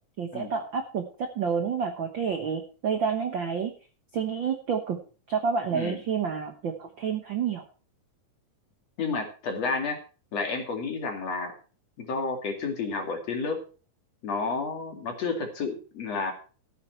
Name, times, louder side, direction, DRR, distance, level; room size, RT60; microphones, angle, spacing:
voice 1, 0.2-1.0 1.3-3.7 4.1-5.0 5.3-7.6, right 6 dB, 65° right, 5 dB, 1.2 m, -29 dB
voice 2, 9.0-10.0 10.3-11.5 12.0-13.6 14.2-16.3, left 4 dB, 50° left, 4 dB, 3.1 m, -31 dB
14.0 x 9.6 x 4.5 m, 0.37 s
omnidirectional pair, 3.9 m